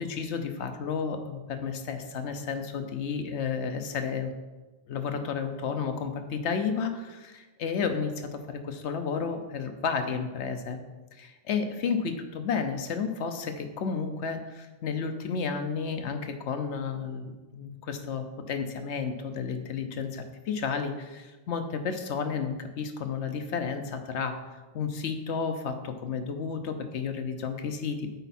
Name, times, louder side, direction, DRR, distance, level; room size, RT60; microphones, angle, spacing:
voice 1, 0.0-4.3 4.9-10.8 11.1-24.4 24.7-28.1, left 5 dB, 65° left, 7 dB, 0.9 m, -32 dB
8.1 x 4.5 x 4.2 m, 1.2 s
omnidirectional pair, 1.4 m